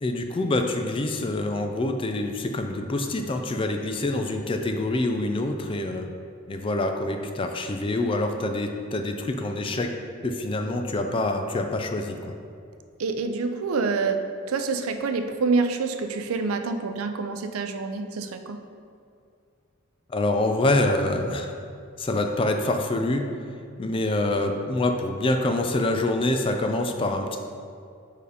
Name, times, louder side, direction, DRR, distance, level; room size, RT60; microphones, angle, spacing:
voice 1, 0.0-6.1 6.5-9.9 10.2-12.3 20.1-21.5 22.0-23.3 23.8-27.4, left 2 dB, 25° left, 5 dB, 0.4 m, -26 dB
voice 2, 13.0-14.2 14.5-18.6, right 4 dB, 90° right, 8 dB, 0.5 m, -27 dB
5.0 x 4.7 x 4.9 m, 2.4 s
head